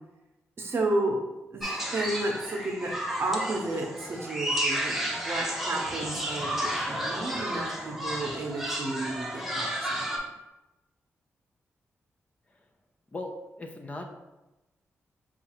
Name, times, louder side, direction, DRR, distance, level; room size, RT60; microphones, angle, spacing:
voice 1, 0.6-1.2 1.5-1.7 1.9-2.9 3.2-10.0, right 2 dB, 55° right, 1 dB, 0.7 m, -32 dB
sound 1, 1.6-10.2, right 1 dB, 5° right, 0.7 m, -32 dB
voice 2, 13.1-14.0, left 2 dB, 30° left, 3 dB, 0.5 m, -39 dB
4.4 x 2.4 x 2.9 m, 1.0 s
cardioid pair, 75°, 5 cm